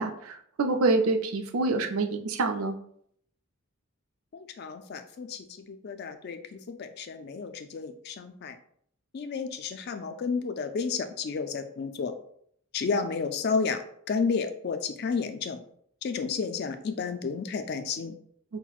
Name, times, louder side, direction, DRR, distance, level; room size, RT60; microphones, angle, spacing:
voice 1, 0.0-2.8, right 3 dB, 75° right, 5 dB, 0.4 m, -26 dB
voice 2, 4.3-8.6 9.1-12.1 12.7-15.6 16.0-18.1, left 5 dB, 45° left, 8 dB, 0.3 m, -32 dB
5.7 x 2.1 x 2.3 m, 0.67 s
head